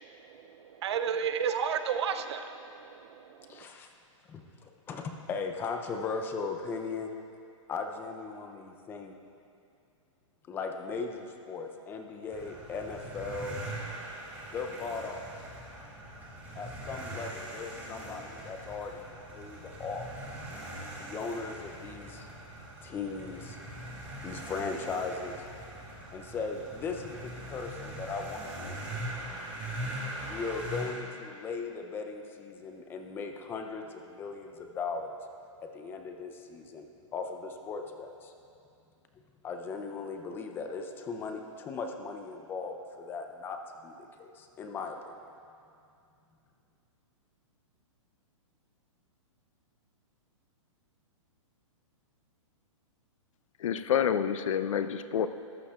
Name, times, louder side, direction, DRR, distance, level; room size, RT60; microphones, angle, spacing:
voice 1, 0.0-3.6, right 7 dB, 55° right, 9 dB, 0.5 m, -33 dB
voice 2, 3.5-3.9 4.3-7.1 7.7-9.1 10.5-13.6 14.5-15.3 16.6-20.1 21.0-22.3 22.8-23.6 24.2-25.4 26.1-28.9 30.3-35.2 35.7-38.3 39.4-45.2, left 4 dB, 10° left, 4 dB, 0.5 m, -38 dB
sound 1, 12.3-30.9, right 1 dB, 10° right, 1.8 m, -41 dB
voice 3, 53.6-55.3, left 8 dB, 75° left, 12 dB, 0.5 m, -28 dB
14.5 x 11.0 x 2.4 m, 2.5 s
hypercardioid pair, 155°, 17 cm